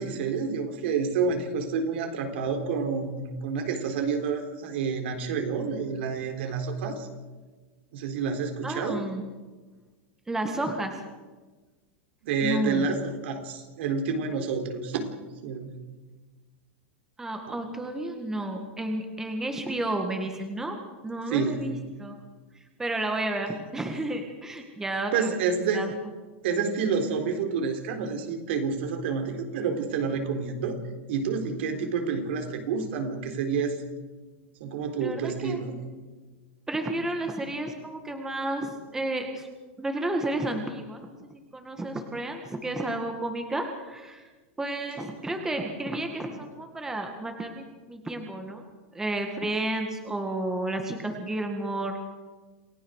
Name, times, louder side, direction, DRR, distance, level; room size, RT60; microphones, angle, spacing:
voice 1, 0.0-7.1 7.9-9.0 12.2-15.1 15.4-15.8 17.5-17.6 21.3-21.7 25.1-25.9 26.4-30.8 31.1-33.8 34.6-35.7, right 5 dB, 65° right, 5 dB, 3.9 m, -29 dB
voice 2, 8.6-9.3 10.3-11.0 12.4-12.9 17.2-20.8 21.0-22.2 22.8-25.3 25.7-25.9 35.0-35.6 36.7-39.5 39.8-44.2 44.6-48.6 48.9-52.0, right 1 dB, 10° right, 4 dB, 1.9 m, -31 dB
28.0 x 16.5 x 6.5 m, 1.3 s
supercardioid pair, 150°, 7 cm